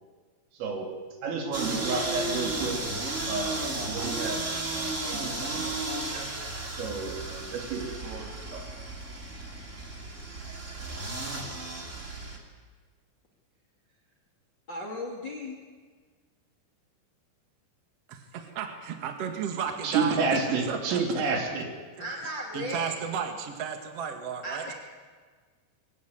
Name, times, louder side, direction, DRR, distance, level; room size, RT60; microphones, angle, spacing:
voice 1, 1.2-2.8 3.3-6.3 6.7-8.7 19.8-21.7, right 4 dB, 80° right, 2 dB, 5.7 m, -31 dB
sound 1, 1.5-12.4, right 2 dB, 25° right, 1.9 m, -34 dB
voice 2, 14.7-15.5 22.0-22.9 24.4-24.7, left 1 dB, 40° left, 2 dB, 1.6 m, -35 dB
voice 3, 18.1-21.0 22.0-24.7, right 7 dB, 50° right, 5 dB, 2.0 m, -34 dB
22.5 x 16.5 x 9.6 m, 1.5 s
omnidirectional pair, 5.8 m